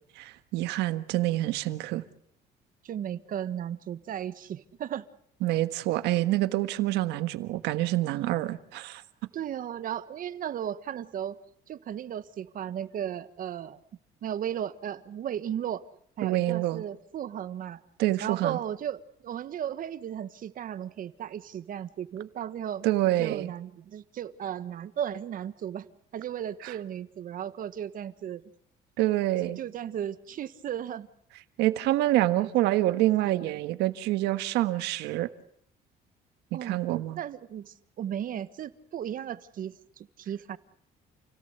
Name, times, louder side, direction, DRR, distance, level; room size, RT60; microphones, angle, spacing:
voice 1, 0.2-2.0 5.4-9.0 16.2-16.8 18.0-18.6 22.8-23.5 26.6-26.7 29.0-29.6 31.6-35.3 36.6-37.2, right 16 dB, 90° right, 1.5 m, -27 dB
voice 2, 2.8-5.1 9.3-11.4 11.7-13.8 14.2-15.8 16.2-17.8 18.2-22.9 23.2-25.9 26.1-28.4 29.6-31.1 32.4-33.5 36.5-36.8 37.1-40.6, right 10 dB, 55° right, 1.5 m, -35 dB
29.5 x 17.5 x 8.1 m
cardioid pair, 110°, 17 cm